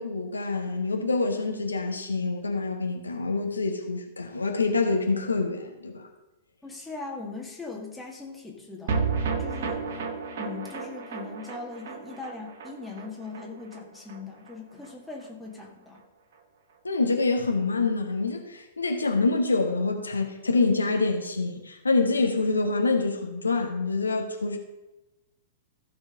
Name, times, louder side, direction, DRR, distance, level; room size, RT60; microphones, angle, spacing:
voice 1, 0.0-6.1 16.8-24.6, left 3 dB, 75° left, 3 dB, 1.4 m, -26 dB
voice 2, 6.6-9.1 9.4-9.9 10.4-16.0, left 4 dB, 5° left, -1 dB, 2.0 m, -40 dB
sound 1, 8.9-15.3 15.6-15.7 16.0-16.1, right 5 dB, 55° right, 1.2 m, -33 dB
15.0 x 5.3 x 5.2 m, 1.0 s
figure-of-eight pair, 105°, 0 cm